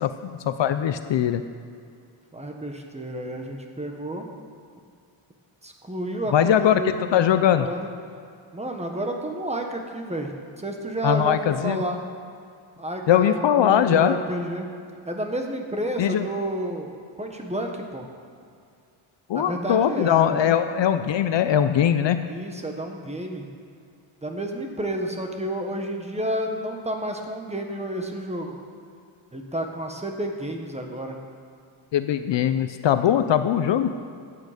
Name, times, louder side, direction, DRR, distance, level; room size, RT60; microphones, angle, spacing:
voice 1, 0.0-1.4 6.3-6.8 7.1-7.7 11.0-11.8 13.1-14.1 16.0-16.2 19.3-22.2 31.9-33.9, left 9 dB, 60° left, 10 dB, 0.7 m, -21 dB
voice 2, 2.3-4.3 5.6-7.9 8.5-12.0 12.8-14.7 15.0-16.9 17.2-18.1 19.3-20.6 22.2-23.5 24.2-28.6 29.3-31.2, right 1 dB, 15° right, 3 dB, 1.3 m, -30 dB
14.5 x 9.0 x 5.1 m, 2.3 s
cardioid pair, 120°, 50 cm